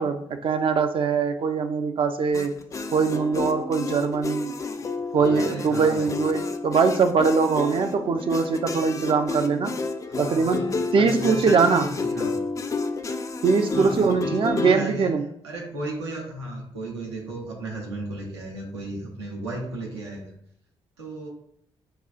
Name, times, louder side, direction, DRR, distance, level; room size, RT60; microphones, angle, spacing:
voice 1, 0.0-2.5 2.9-4.6 5.1-9.7 10.2-11.9 13.4-15.2, right 5 dB, 40° right, 7 dB, 0.5 m, -22 dB
sound 1, 2.3-14.8, left 3 dB, 25° left, 0.4 m, -30 dB
voice 2, 4.8-6.1 10.1-12.4 13.7-15.1 15.4-20.3 21.0-21.3, right 2 dB, 80° right, -2 dB, 0.8 m, -35 dB
6.5 x 2.4 x 2.4 m, 0.72 s
figure-of-eight pair, 40°, 14 cm